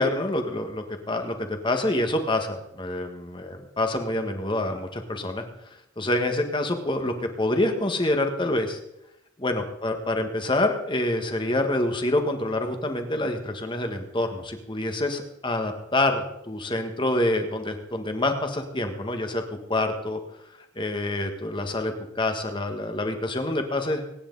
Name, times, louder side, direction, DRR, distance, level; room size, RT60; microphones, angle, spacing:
voice 1, 0.0-5.4 6.0-8.8 9.4-19.4 19.7-20.2 20.8-24.0, left 1 dB, 25° left, 5 dB, 1.8 m, -26 dB
24.0 x 10.0 x 4.1 m, 0.82 s
head